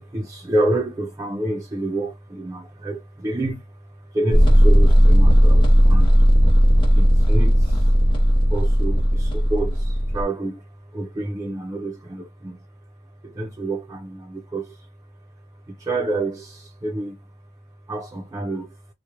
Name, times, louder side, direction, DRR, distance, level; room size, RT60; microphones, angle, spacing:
voice 1, 0.0-3.8 4.1-6.2 6.9-7.9 8.5-10.6 10.9-12.6 13.2-14.9 15.7-17.2 17.9-18.8, right 2 dB, 15° right, 0.3 m, -28 dB
sound 1, 4.3-10.2, equal, 20° left, 0.8 m, -15 dB
2.9 x 2.0 x 2.2 m
head